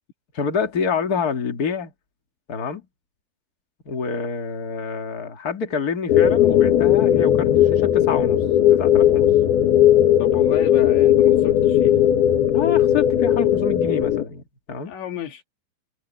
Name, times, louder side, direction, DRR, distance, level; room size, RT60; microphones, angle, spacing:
voice 1, 0.3-1.9 2.5-2.8 3.8-8.4 8.7-9.3 12.5-14.9, left 6 dB, 50° left, 1.1 m, -27 dB
sound 1, 6.1-14.2, left 11 dB, 65° left, 3.3 m, -17 dB
voice 2, 10.2-12.0 14.9-15.4, left 11 dB, 90° left, 4.8 m, -33 dB
omnidirectional pair, 5.1 m